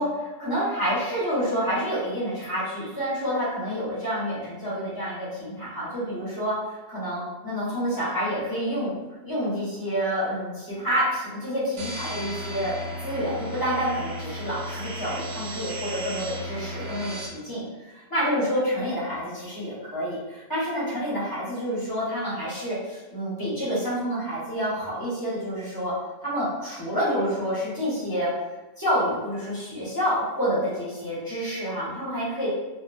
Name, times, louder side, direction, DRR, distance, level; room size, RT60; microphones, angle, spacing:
voice 1, 0.0-6.5 6.9-9.0 9.2-12.7 13.0-17.1 17.4-25.9 26.2-28.3 28.8-32.5, equal, 20° left, -10 dB, 1.0 m, -28 dB
sound 1, 11.8-17.3, equal, 70° right, 0.8 m, -35 dB
2.6 x 2.2 x 2.5 m, 1.1 s
omnidirectional pair, 1.1 m